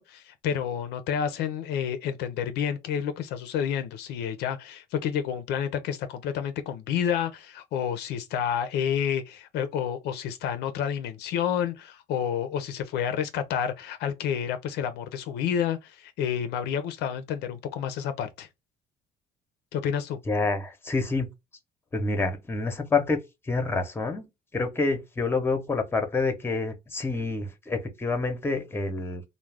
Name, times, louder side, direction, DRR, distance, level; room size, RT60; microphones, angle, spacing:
voice 1, 0.0-18.5 19.7-20.2, left 8 dB, 80° left, 0.4 m, -29 dB
voice 2, 20.3-21.3 21.9-23.2 23.5-29.2, left 3 dB, 15° left, 0.6 m, -28 dB
2.3 x 2.0 x 3.2 m
cardioid pair, 110°, 17 cm